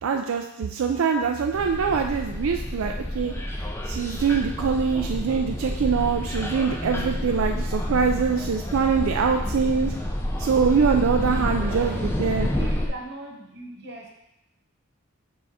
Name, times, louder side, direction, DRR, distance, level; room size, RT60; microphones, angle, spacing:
voice 1, 0.0-9.9 10.4-12.5, right 6 dB, 85° right, 3 dB, 0.4 m, -24 dB
sound 1, 1.5-12.9, left 1 dB, 10° left, 0.4 m, -29 dB
voice 2, 11.6-12.1 12.5-14.1, right 2 dB, 50° right, 1 dB, 1.0 m, -39 dB
6.4 x 3.8 x 4.1 m, 0.85 s
head